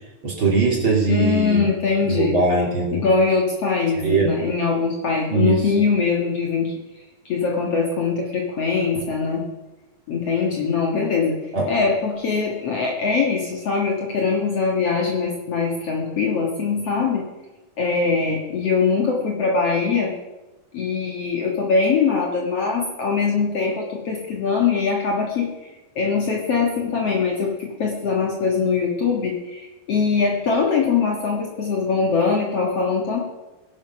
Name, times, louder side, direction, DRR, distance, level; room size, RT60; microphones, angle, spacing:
voice 1, 0.2-1.6 2.1-3.0 4.0-4.3 5.3-5.6 11.5-11.7, right 3 dB, 35° right, -2 dB, 3.5 m, -20 dB
voice 2, 1.1-2.4 2.9-6.7 7.3-9.4 10.1-11.4 11.7-17.2 17.8-20.1 20.7-25.5 26.0-33.2, left 5 dB, 50° left, -1 dB, 2.3 m, -22 dB
17.5 x 10.5 x 5.9 m, 1.1 s
omnidirectional pair, 4.2 m